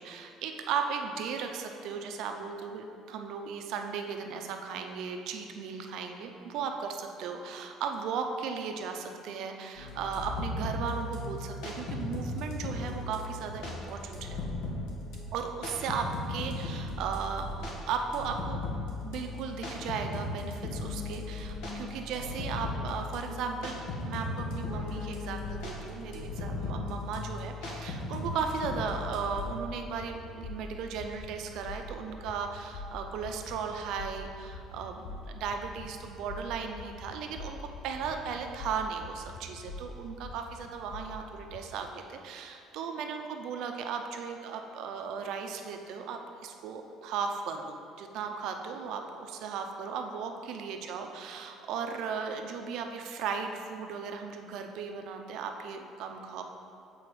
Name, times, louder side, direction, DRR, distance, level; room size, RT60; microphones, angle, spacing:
voice 1, 0.0-14.4 15.3-18.6 19.0-37.6 37.8-56.4, right 6 dB, 65° right, 4 dB, 0.6 m, -36 dB
sound 1, 9.8-29.5, left 2 dB, 85° left, 1.3 m, -37 dB
sound 2, 28.2-41.8, left 2 dB, 50° left, 0.7 m, -45 dB
7.7 x 4.2 x 4.8 m, 2.5 s
cardioid pair, 150°, 0 cm